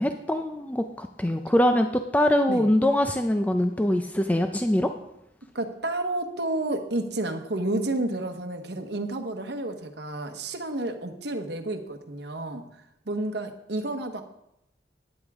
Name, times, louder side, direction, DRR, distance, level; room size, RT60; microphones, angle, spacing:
voice 1, 0.0-4.9, left 1 dB, 10° left, 6 dB, 0.5 m, -23 dB
voice 2, 5.5-12.6 13.1-14.2, right 2 dB, 65° right, 5 dB, 1.2 m, -30 dB
13.5 x 9.8 x 3.6 m, 0.83 s
head